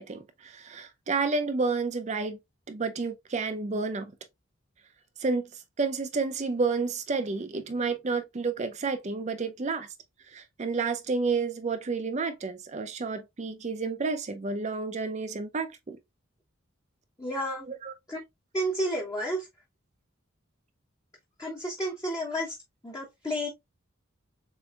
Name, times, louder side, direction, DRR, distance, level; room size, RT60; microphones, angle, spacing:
voice 1, 0.0-2.4 2.7-4.1 5.2-5.5 5.8-9.9 10.3-16.0 17.7-17.9, right 4 dB, 35° right, 0.5 m, -30 dB
voice 2, 17.2-17.6 18.1-18.2 18.5-19.5 21.4-22.6 22.8-23.5, equal, 15° left, 0.8 m, -31 dB
6.9 x 2.6 x 2.3 m
head